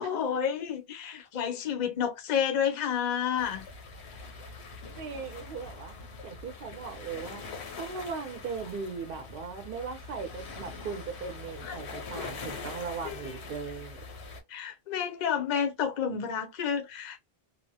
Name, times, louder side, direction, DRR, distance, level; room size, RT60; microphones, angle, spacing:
voice 1, 0.0-3.7 11.6-11.8 13.0-13.4 14.5-17.2, left 8 dB, 50° left, 0.6 m, -30 dB
sound 1, 3.4-14.4, left 4 dB, 85° left, 1.0 m, -43 dB
voice 2, 5.0-5.9 6.2-7.4 7.8-14.0, right 5 dB, 60° right, 0.8 m, -38 dB
2.9 x 2.0 x 2.7 m
omnidirectional pair, 1.1 m